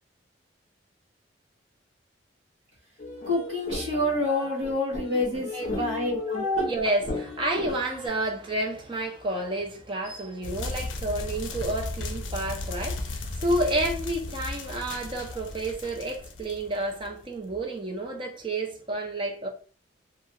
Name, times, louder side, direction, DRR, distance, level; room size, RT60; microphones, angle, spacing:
sound 1, 3.0-8.1, left 1 dB, 40° left, 0.6 m, -34 dB
voice 1, 3.2-6.7, left 1 dB, 80° right, 1.1 m, -28 dB
voice 2, 6.7-19.5, right 1 dB, 25° right, 0.5 m, -30 dB
sound 2, 10.4-17.2, left 2 dB, 80° left, 0.5 m, -35 dB
2.4 x 2.2 x 2.8 m
head